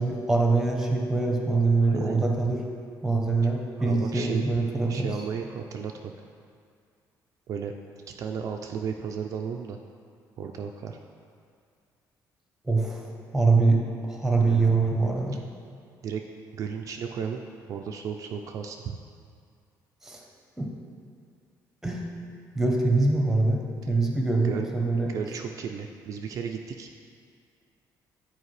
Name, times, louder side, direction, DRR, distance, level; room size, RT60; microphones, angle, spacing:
voice 1, 0.0-2.6 3.0-5.1 12.6-13.1 13.3-13.8 14.1-15.4 20.0-20.2 20.6-20.7 21.8-22.1 22.5-23.6 23.9-25.1, right 3 dB, 5° right, 0 dB, 0.8 m, -24 dB
voice 2, 1.8-2.3 3.8-4.4 4.9-6.1 7.5-7.7 8.2-9.8 10.4-11.0 14.4-14.7 16.0-16.2 16.5-17.4 17.7-19.0 24.4-24.7 25.1-26.9, right 7 dB, 50° right, 3 dB, 0.3 m, -34 dB
9.8 x 4.4 x 3.2 m, 2.2 s
cardioid pair, 160°, 7 cm